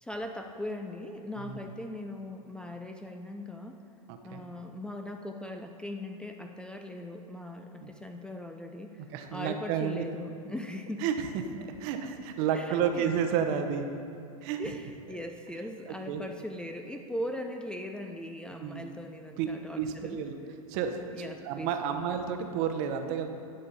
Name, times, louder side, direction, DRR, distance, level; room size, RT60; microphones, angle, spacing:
voice 1, 0.0-3.8 4.2-9.0 9.3-11.1 12.5-13.1 14.6-20.2 21.1-22.0, left 1 dB, 5° left, 4 dB, 0.5 m, -39 dB
voice 2, 4.1-4.4 7.8-7.9 8.9-10.0 11.0-11.3 11.6-13.9 14.4-14.8 15.9-16.2 18.6-18.8 19.4-19.5 19.8-20.4 20.7-23.3, right 8 dB, 50° right, 6 dB, 0.9 m, -31 dB
11.0 x 6.7 x 4.1 m, 2.6 s
hypercardioid pair, 100°, 19 cm